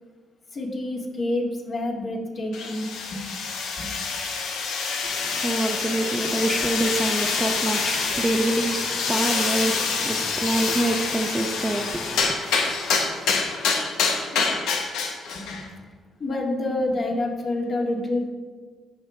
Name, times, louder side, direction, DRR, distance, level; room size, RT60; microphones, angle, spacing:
voice 1, 0.5-2.9 3.8-3.9 14.3-14.6 15.5-15.7 16.2-18.3, left 2 dB, 45° left, -1 dB, 1.9 m, -27 dB
sound 1, 2.5-15.7, left 4 dB, 90° left, 1.1 m, -26 dB
voice 2, 5.0-12.3, right 1 dB, 15° right, 4 dB, 0.6 m, -26 dB
13.5 x 5.0 x 3.7 m, 1.5 s
cardioid pair, 90°, 0 cm